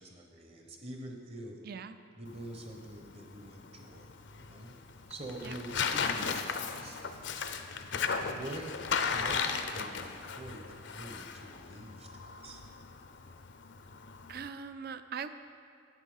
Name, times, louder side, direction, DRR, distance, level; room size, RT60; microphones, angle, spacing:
voice 1, 0.0-1.6 2.2-4.8 5.1-7.0 8.1-8.7 9.1-12.6, right 1 dB, 30° right, 2 dB, 0.9 m, -46 dB
voice 2, 1.6-2.0 5.4-5.6 14.3-15.3, right 6 dB, 45° right, 11 dB, 0.4 m, -41 dB
Tearing, 2.3-14.5, left 5 dB, 55° left, 0.5 m, -36 dB
8.2 x 8.2 x 5.5 m, 2.5 s
head